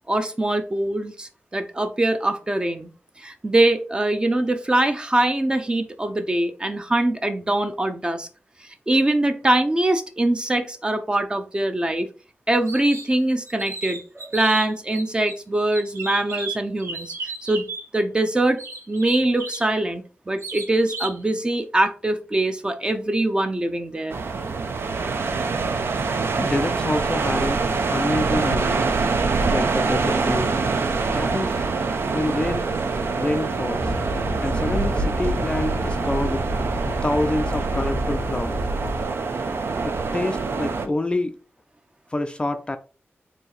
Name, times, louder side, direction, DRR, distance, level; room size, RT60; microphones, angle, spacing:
voice 1, 0.1-2.9 3.2-8.3 8.9-12.1 12.5-17.7 17.9-18.6 18.9-24.2, right 1 dB, 20° right, 0.6 m, -23 dB
sound 1, 12.7-13.1 13.5-15.3 15.7-17.8 18.6-19.7 20.4-21.2, right 3 dB, 85° right, 1.3 m, -34 dB
sound 2, 24.1-40.9, right 4 dB, 65° right, 0.6 m, -25 dB
voice 2, 26.4-27.6 27.9-28.9 29.5-30.6 31.1-31.6 32.1-32.6 33.1-33.9 34.4-36.4 36.8-38.6 39.8-41.3 42.1-42.8, left 2 dB, 25° left, 0.4 m, -27 dB
sound 3, 33.8-39.0, right 1 dB, 45° right, 1.5 m, -28 dB
4.5 x 2.8 x 3.9 m
wide cardioid pair, 120°, 4 cm